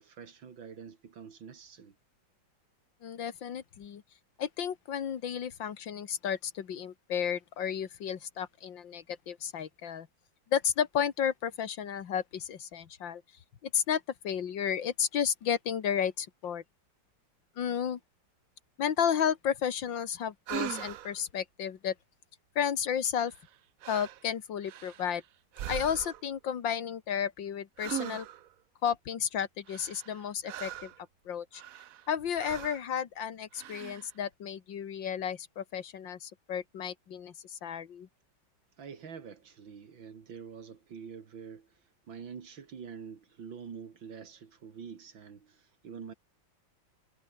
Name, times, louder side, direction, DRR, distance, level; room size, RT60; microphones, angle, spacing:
voice 1, 0.0-2.0 38.8-41.7 42.1-46.1, right 6 dB, 80° right, 2.8 m, -46 dB
voice 2, 3.0-4.0 4.4-10.1 10.5-13.2 13.6-16.6 17.6-18.0 18.8-21.9 22.6-23.3 23.9-25.2 25.7-28.3 28.8-30.9 31.3-31.6 32.1-38.1, left 8 dB, 75° left, 2.2 m, -32 dB
sound 1, 20.5-21.2 23.3-23.5 23.8-24.2 24.6-25.2 25.5-26.3 27.8-28.5 29.7-31.0 31.5-32.1 32.4-32.9 33.5-34.1, right 12 dB, 65° right, 0.9 m, -40 dB
omnidirectional pair, 2.1 m